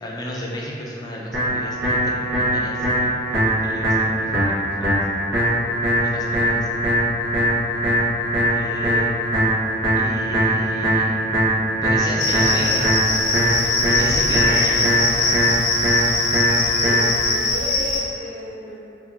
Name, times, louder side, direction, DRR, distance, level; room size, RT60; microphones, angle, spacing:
voice 1, 0.0-4.3 4.6-5.0 6.0-6.7 8.5-9.1 9.9-11.1 11.8-15.5, left 1 dB, 20° left, -3 dB, 0.3 m, -32 dB
sound 1, 1.3-17.3, equal, 90° right, 0.9 m, -21 dB
Cricket, 12.2-18.0, left 3 dB, 85° left, 0.6 m, -22 dB
voice 2, 17.3-18.8, left 1 dB, 25° right, -8 dB, 0.6 m, -32 dB
2.7 x 2.3 x 3.3 m, 2.7 s
head